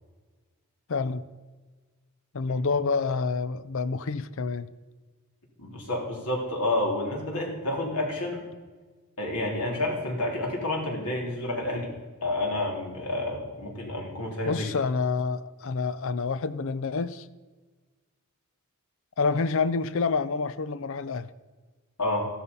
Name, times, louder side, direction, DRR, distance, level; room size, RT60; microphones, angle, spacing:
voice 1, 0.9-1.2 2.3-4.7 14.4-17.3 19.2-21.3, left 4 dB, 60° left, 14 dB, 0.5 m, -28 dB
voice 2, 5.6-8.5 9.2-11.9 12.2-14.6 22.0-22.3, left 1 dB, 90° left, 0 dB, 4.0 m, -29 dB
14.5 x 12.5 x 5.5 m, 1.3 s
head